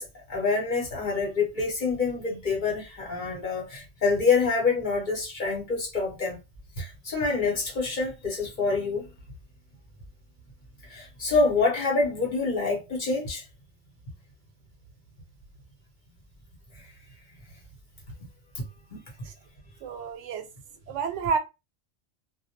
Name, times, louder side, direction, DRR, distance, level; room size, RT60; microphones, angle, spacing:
voice 1, 0.0-6.4 6.8-9.1 10.8-13.4 16.7-16.9 18.5-18.6 18.9-19.0, left 4 dB, 45° left, 0.9 m, -26 dB
voice 2, 19.8-20.5 20.9-21.4, right 6 dB, 80° right, 0.9 m, -29 dB
2.2 x 2.1 x 2.8 m
omnidirectional pair, 1.2 m